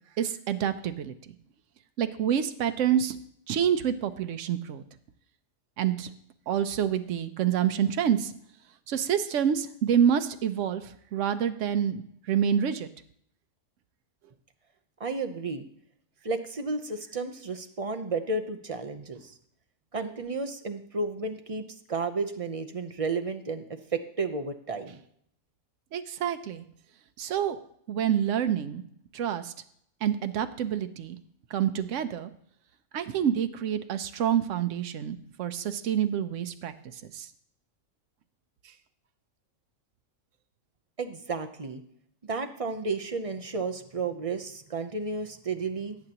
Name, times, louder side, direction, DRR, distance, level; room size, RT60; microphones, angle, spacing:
voice 1, 0.2-1.1 2.0-3.2 3.5-4.8 5.8-6.1 6.5-8.3 8.9-12.9 25.9-26.6 27.2-27.6 27.9-28.8 29.1-29.5 30.0-31.2 31.5-32.3 32.9-36.7 37.1-37.3, right 9 dB, 80° right, 9 dB, 1.0 m, -27 dB
voice 2, 15.0-15.7 16.2-19.3 19.9-25.0 41.0-41.8 42.2-46.0, right 3 dB, 35° right, 6 dB, 0.7 m, -32 dB
17.5 x 7.8 x 2.9 m, 0.68 s
omnidirectional pair, 1.3 m